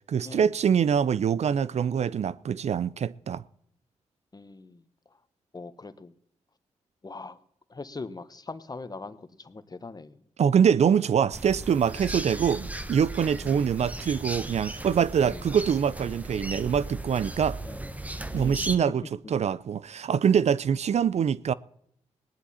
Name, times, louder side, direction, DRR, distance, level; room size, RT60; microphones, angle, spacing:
voice 1, 0.1-3.4 10.4-17.6 18.3-19.0 19.3-21.5, right 7 dB, 60° right, 0.5 m, -24 dB
voice 2, 4.3-4.8 5.5-6.1 7.0-7.4 7.7-10.2 13.4-13.7 15.2-15.5 17.6-17.8 18.3-18.9 20.4-20.5, left 3 dB, 30° left, 1.2 m, -41 dB
sound 1, 11.3-18.8, right 2 dB, 10° right, 1.2 m, -36 dB
18.0 x 11.0 x 4.3 m
cardioid pair, 55°, 12 cm